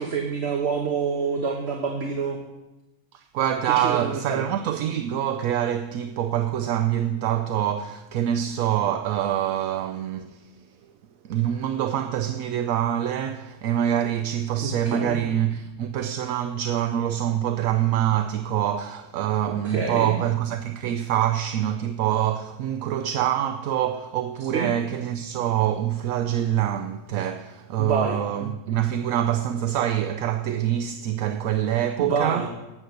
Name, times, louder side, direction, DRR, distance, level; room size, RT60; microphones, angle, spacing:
voice 1, 0.0-2.4 3.7-4.5 14.6-15.2 19.6-20.2 24.5-24.7 27.8-28.2 32.0-32.5, right 5 dB, 50° right, 1.3 m, -27 dB
voice 2, 3.1-10.5 11.2-32.5, right 11 dB, 75° right, 1.0 m, -25 dB
9.5 x 7.7 x 6.5 m
omnidirectional pair, 1.5 m